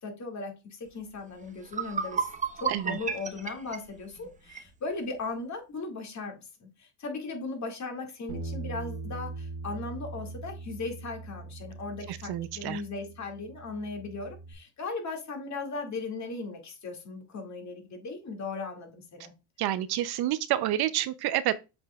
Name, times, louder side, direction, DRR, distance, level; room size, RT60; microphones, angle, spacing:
voice 1, 0.0-2.3 2.6-19.3, left 3 dB, 35° left, 2.2 m, -37 dB
sound 1, 1.2-1.3 1.6-4.7, right 6 dB, 15° right, 0.7 m, -33 dB
voice 2, 2.7-3.0 12.1-12.8 19.6-21.6, right 13 dB, 55° right, 0.6 m, -29 dB
Bass guitar, 8.3-14.5, right 3 dB, 75° right, 1.9 m, -41 dB
7.7 x 5.4 x 2.3 m
cardioid pair, 105°, 46 cm